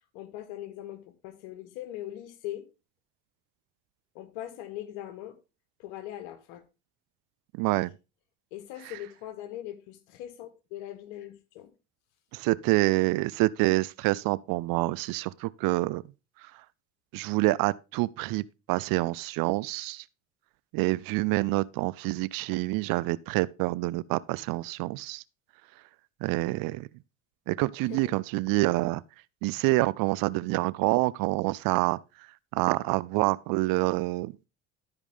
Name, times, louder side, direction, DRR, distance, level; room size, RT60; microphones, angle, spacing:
voice 1, 0.1-2.6 4.1-5.4 5.8-6.6 8.5-11.7 27.9-28.0, left 13 dB, 80° left, 1.5 m, -40 dB
voice 2, 7.6-7.9 8.8-9.0 12.3-16.0 17.1-20.0 20.7-25.2 26.2-26.9 27.5-29.0 29.4-32.0 32.5-34.3, right 21 dB, 65° right, 0.6 m, -27 dB
12.5 x 4.9 x 3.5 m
supercardioid pair, 85°, 36 cm